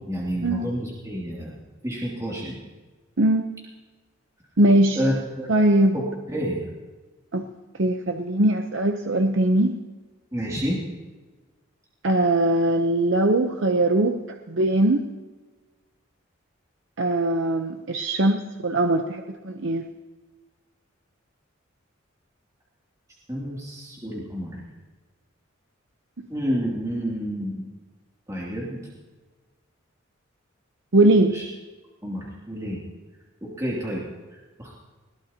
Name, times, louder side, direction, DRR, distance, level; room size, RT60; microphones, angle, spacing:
voice 1, 0.1-1.5 1.8-2.6 5.0-5.5 5.9-6.0 6.3-6.6 10.3-10.8 23.3-24.6 26.3-27.7 28.3-28.8 31.3-31.4 32.0-32.8 33.4-34.0 34.3-34.8, equal, 15° right, -5 dB, 2.8 m, -29 dB
voice 2, 4.6-5.0 5.5-5.9 7.3-7.4 7.8-9.8 12.0-14.2 14.5-15.0 17.0-19.8 30.9-31.4, right 1 dB, 65° right, 5 dB, 0.9 m, -21 dB
21.0 x 17.5 x 3.0 m, 1.3 s
head